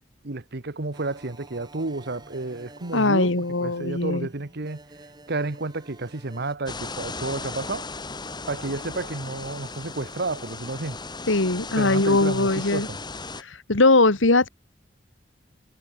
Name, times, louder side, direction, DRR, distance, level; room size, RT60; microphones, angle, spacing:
voice 1, 0.2-4.8 5.3-7.9 8.5-11.0 11.8-13.0, right 2 dB, 60° right, 1.3 m, -31 dB
sound 1, 0.9-6.6, right 1 dB, 20° right, 5.3 m, -49 dB
voice 2, 2.9-4.3 11.3-12.9 13.4-14.5, left 2 dB, 85° left, 2.0 m, -20 dB
sound 2, 6.7-13.4, left 3 dB, 25° left, 2.8 m, -36 dB
head